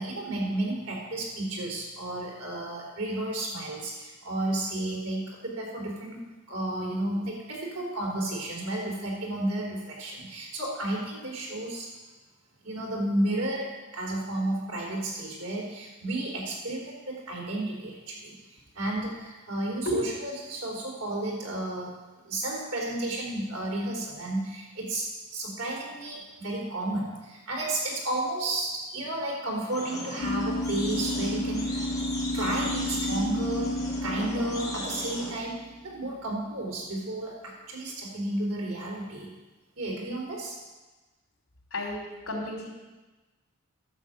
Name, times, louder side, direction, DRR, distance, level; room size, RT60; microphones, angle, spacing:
voice 1, 0.0-6.2 6.5-11.9 12.6-21.9 22.2-32.0 32.3-33.7 34.0-39.3 39.8-40.6, right 1 dB, 75° right, -2 dB, 3.9 m, -32 dB
sound 1, 29.7-35.4, left 2 dB, 15° left, 3.4 m, -38 dB
sound 2, 30.2-36.0, left 1 dB, 55° left, 1.2 m, -31 dB
voice 2, 41.7-42.7, left 1 dB, 70° left, -1 dB, 3.1 m, -31 dB
11.0 x 7.2 x 7.4 m, 1.2 s
head